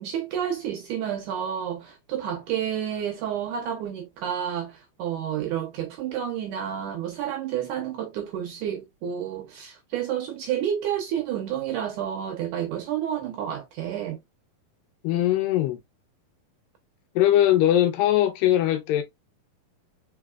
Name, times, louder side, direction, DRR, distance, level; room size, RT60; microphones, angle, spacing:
voice 1, 0.0-14.2, right 9 dB, 80° right, 1.9 m, -30 dB
voice 2, 15.0-15.8 17.2-19.0, left 12 dB, 80° left, 2.2 m, -21 dB
4.8 x 4.0 x 2.2 m
omnidirectional pair, 4.3 m